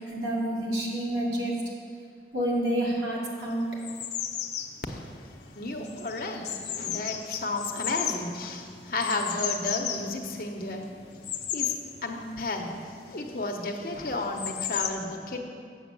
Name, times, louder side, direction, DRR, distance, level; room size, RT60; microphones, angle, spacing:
voice 1, 0.1-1.5 2.3-3.6, right 1 dB, 80° right, -4 dB, 2.2 m, -28 dB
sound 1, 3.5-14.9, left 9 dB, 85° left, 0.7 m, -35 dB
voice 2, 5.4-10.8 11.5-11.7 12.0-15.4, left 2 dB, 55° left, 2 dB, 0.9 m, -33 dB
7.9 x 6.3 x 7.6 m, 2.1 s
head